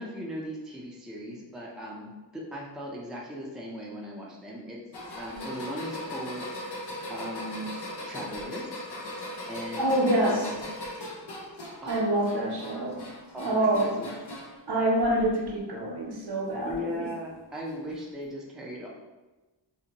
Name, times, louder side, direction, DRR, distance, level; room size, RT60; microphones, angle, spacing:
voice 1, 0.0-4.8 5.2-6.8 7.1-8.8 9.5-10.6 11.8-12.0 12.3-12.4 13.3-14.1 16.6-18.9, equal, ahead, -3 dB, 0.5 m, -38 dB
sound 1, 4.9-14.6 15.0-15.6 16.7-16.8 17.9-18.0, left 1 dB, 60° left, 0.7 m, -39 dB
voice 2, 9.8-10.5 11.9-13.0 13.4-14.0 14.7-17.1, right 1 dB, 60° right, -2 dB, 0.7 m, -26 dB
2.6 x 2.1 x 2.8 m, 1.1 s
wide cardioid pair, 40°, 45 cm